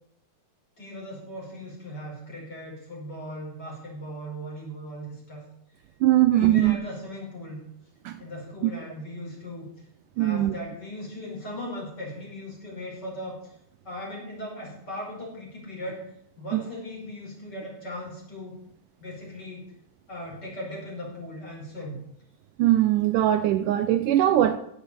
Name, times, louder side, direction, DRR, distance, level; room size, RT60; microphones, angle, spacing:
voice 1, 0.8-5.4 6.3-7.6 8.2-9.7 10.2-13.4 13.8-16.0 16.4-18.5 19.0-19.7 20.1-22.0, left 1 dB, 30° left, -2 dB, 5.5 m, -38 dB
voice 2, 6.0-6.8 8.1-8.2 8.6-8.7 10.2-10.5 16.5-16.6 22.6-24.6, right 13 dB, 75° right, 10 dB, 2.1 m, -21 dB
16.5 x 7.7 x 8.6 m, 0.73 s
omnidirectional pair, 4.0 m